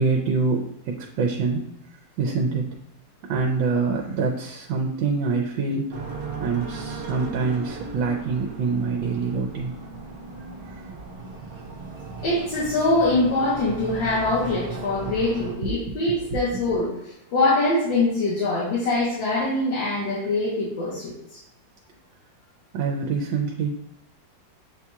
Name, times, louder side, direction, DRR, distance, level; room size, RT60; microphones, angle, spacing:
voice 1, 0.0-1.7 2.2-2.7 3.3-5.9 6.4-9.7 10.6-11.0 15.1-15.2 22.7-23.7, right 4 dB, 80° right, 1 dB, 1.3 m, -25 dB
sound 1, 5.9-15.5, right 3 dB, 60° right, 1.1 m, -36 dB
voice 2, 12.2-16.9 17.3-21.4, left 2 dB, 75° left, -7 dB, 1.8 m, -23 dB
7.4 x 2.8 x 2.3 m, 0.83 s
omnidirectional pair, 2.1 m